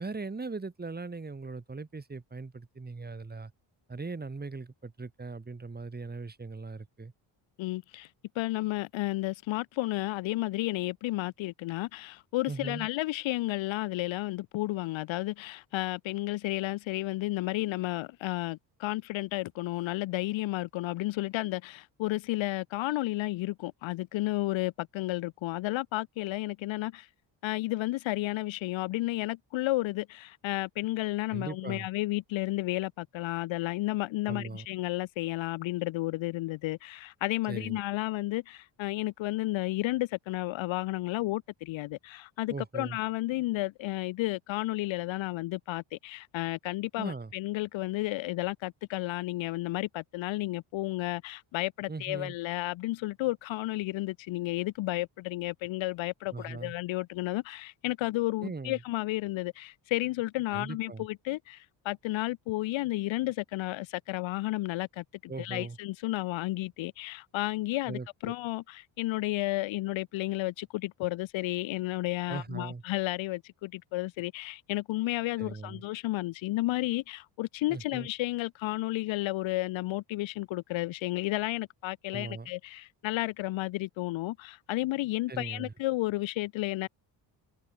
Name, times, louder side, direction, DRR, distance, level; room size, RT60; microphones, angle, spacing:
voice 1, 0.0-3.5 3.9-7.1 12.5-12.9 31.3-31.9 34.3-34.7 37.5-37.8 42.5-43.0 47.0-47.3 51.9-52.3 56.3-56.7 58.4-58.8 60.5-61.1 65.3-65.8 67.9-68.3 72.3-72.8 75.4-75.8 77.7-78.1 82.1-82.5 85.3-85.7, right 3 dB, 20° right, 4.5 m, -39 dB
voice 2, 7.6-8.1 8.3-27.1 27.4-86.9, left 18 dB, 80° left, 1.1 m, -32 dB
cardioid pair, 100°, 46 cm